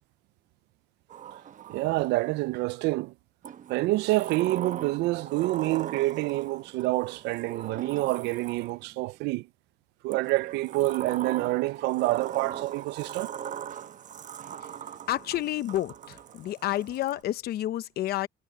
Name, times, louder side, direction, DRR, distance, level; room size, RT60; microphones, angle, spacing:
Sliding door, 1.1-2.5 3.4-9.0 10.1-17.2, right 9 dB, 50° right, 1.1 m, -40 dB
voice 1, 1.7-3.1 3.7-9.5 10.0-13.3, right 20 dB, 90° right, 0.5 m, -27 dB
voice 2, 15.1-18.3, left 14 dB, 65° left, 0.9 m, -30 dB
cardioid pair, 110°, 17 cm